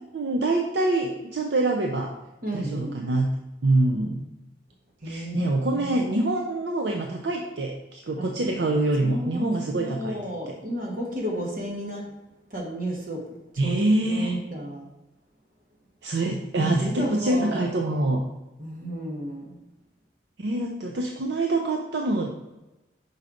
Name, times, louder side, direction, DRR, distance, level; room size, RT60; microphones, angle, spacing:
voice 1, 0.1-2.1 2.5-3.3 3.6-4.3 5.0-10.2 10.5-10.6 13.6-14.3 16.0-18.2 20.4-22.3, right 2 dB, 65° right, 2 dB, 0.5 m, -25 dB
voice 2, 2.4-2.9 5.0-6.0 8.2-8.3 9.0-12.1 12.5-13.3 13.6-13.8 14.0-14.9 16.5-17.7 18.6-19.6, right 1 dB, 45° right, 0 dB, 1.4 m, -32 dB
5.5 x 3.9 x 4.9 m, 1.0 s
head